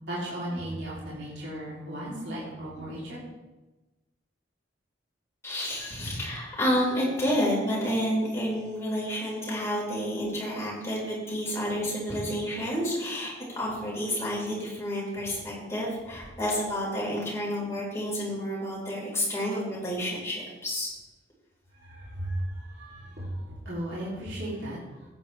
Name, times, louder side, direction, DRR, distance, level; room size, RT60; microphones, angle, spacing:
voice 1, 0.1-3.2 21.7-25.1, right 1 dB, 65° right, -7 dB, 3.2 m, -35 dB
voice 2, 5.4-20.9, equal, 15° left, -5 dB, 4.6 m, -30 dB
15.0 x 9.5 x 3.4 m, 1.1 s
head